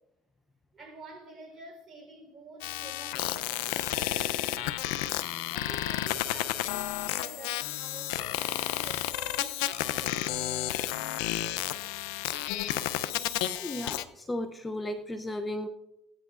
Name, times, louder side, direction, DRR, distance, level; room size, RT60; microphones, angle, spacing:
voice 1, 0.7-4.5 5.5-11.8 12.7-12.8, right 2 dB, 30° right, 3.8 m, -49 dB
sound 1, 2.6-14.0, left 14 dB, 85° left, 0.5 m, -32 dB
voice 2, 13.4-15.7, left 1 dB, 15° left, 0.6 m, -35 dB
16.5 x 10.5 x 2.5 m
supercardioid pair, 100°, 0 cm